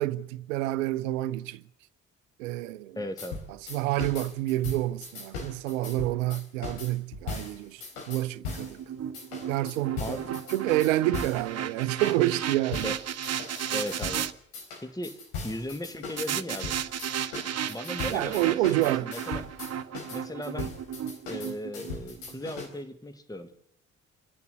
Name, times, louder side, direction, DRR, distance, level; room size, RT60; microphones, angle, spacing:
voice 1, 0.0-1.6 2.4-3.0 3.5-8.8 9.5-12.9 18.1-19.1, right 16 dB, 70° right, 0.7 m, -28 dB
voice 2, 3.0-3.4 10.0-10.3 12.8-13.0 13.7-14.3 14.8-15.2 15.4-16.7 17.7-19.4 20.1-20.7 21.3-23.5, left 1 dB, 10° left, 1.7 m, -37 dB
sound 1, 3.2-8.8 9.1-11.5 12.0-12.2 12.7-14.2 14.5-22.7, left 4 dB, 70° left, 4.2 m, -39 dB
sound 2, 8.1-14.3 16.2-22.4, right 9 dB, 40° right, 1.0 m, -34 dB
27.0 x 10.5 x 9.6 m
figure-of-eight pair, 40°, 39 cm